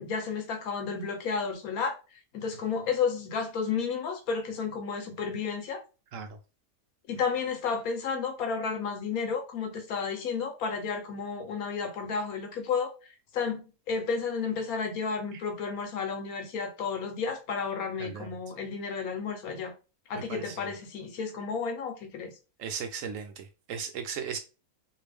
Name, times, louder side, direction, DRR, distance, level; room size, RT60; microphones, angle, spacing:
voice 1, 0.0-2.0 2.3-5.8 7.1-12.9 13.3-19.7 20.1-22.3, left 5 dB, 80° left, 1.2 m, -32 dB
voice 2, 20.3-20.6 22.6-24.4, right 7 dB, 70° right, 0.9 m, -37 dB
2.8 x 2.7 x 3.3 m
omnidirectional pair, 1.5 m